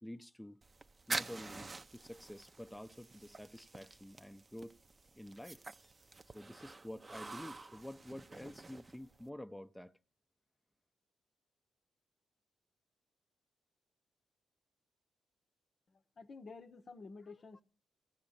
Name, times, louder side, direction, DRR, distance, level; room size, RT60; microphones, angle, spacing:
voice 1, 0.0-0.6 1.1-4.8 5.1-5.8 6.3-9.9, left 1 dB, 5° left, 0.6 m, -49 dB
sound 1, 0.6-9.3, right 3 dB, 35° right, 0.6 m, -47 dB
voice 2, 15.9-17.6, left 4 dB, 50° left, 0.8 m, -51 dB
15.5 x 6.5 x 8.7 m
supercardioid pair, 55°, 0 cm